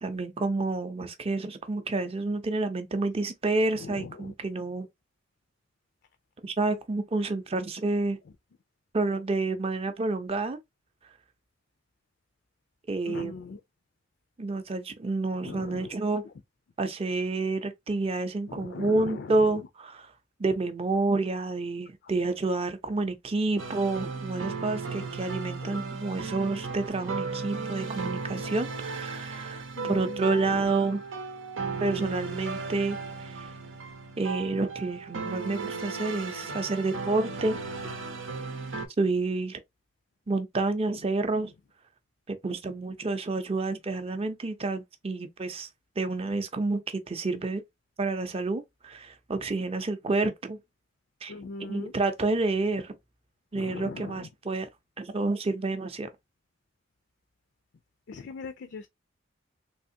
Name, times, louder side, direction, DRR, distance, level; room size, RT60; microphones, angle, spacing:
voice 1, 0.0-4.9 6.4-8.2 8.9-10.6 12.9-13.3 14.4-16.2 16.8-20.1 20.4-31.0 31.8-33.5 34.2-37.6 39.0-39.6 40.3-41.5 42.3-45.7 46.0-47.6 48.0-50.6 51.2-51.3 51.7-52.9 53.5-54.7 55.0-56.1, right 3 dB, 30° right, 0.5 m, -29 dB
voice 2, 3.8-4.3 13.1-13.6 15.4-16.0 18.5-19.6 24.9-25.1 25.6-25.9 29.8-30.7 51.3-51.9 53.5-54.3 58.1-58.9, left 4 dB, 60° left, 0.4 m, -40 dB
sound 1, 23.6-38.9, right 4 dB, 90° right, 0.8 m, -36 dB
3.4 x 2.8 x 2.7 m
head